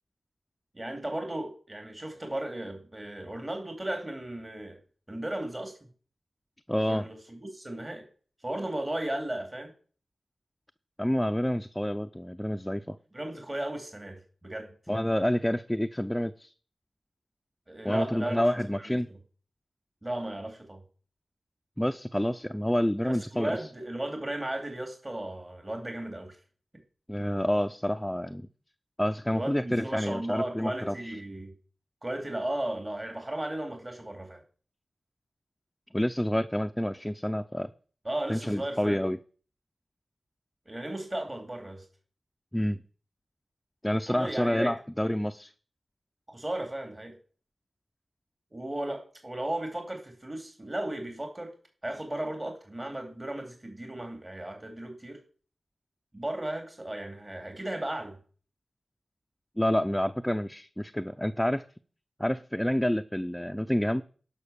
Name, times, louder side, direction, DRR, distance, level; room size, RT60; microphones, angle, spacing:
voice 1, 0.7-4.8 5.1-5.8 6.9-8.1 8.4-9.7 13.1-14.7 17.7-18.5 18.8-19.2 20.0-20.8 23.0-26.4 29.3-31.5 32.0-34.4 38.0-39.0 40.7-41.8 44.1-44.7 46.3-47.2 48.5-51.5 51.8-55.2 56.1-58.2, right 1 dB, 30° right, 2.7 m, -35 dB
voice 2, 6.7-7.1 11.0-13.0 14.9-16.5 17.8-19.1 21.8-23.6 27.1-28.5 29.0-31.2 35.9-37.7 38.3-39.2 42.5-42.8 43.8-45.5 59.6-61.6 62.2-64.0, equal, 10° left, 0.6 m, -28 dB
11.5 x 5.4 x 7.0 m
cardioid pair, 45°, 0 cm